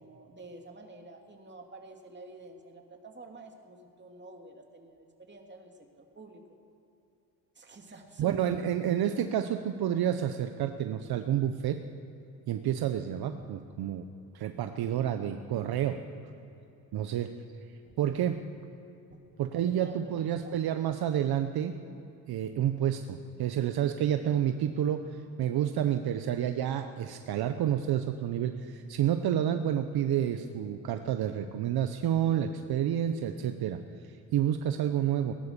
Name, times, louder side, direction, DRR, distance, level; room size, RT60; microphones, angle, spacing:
voice 1, 0.0-6.4 7.6-8.4 17.8-18.0 19.1-19.2 19.6-20.5, right 2 dB, 25° right, 2 dB, 2.8 m, -49 dB
voice 2, 8.2-11.8 12.5-14.1 14.3-16.0 16.9-17.3 18.0-18.4 19.4-21.7 22.3-25.1 25.4-35.3, right 10 dB, 65° right, 8 dB, 1.0 m, -29 dB
19.0 x 11.0 x 6.9 m, 2.9 s
supercardioid pair, 75°, 41 cm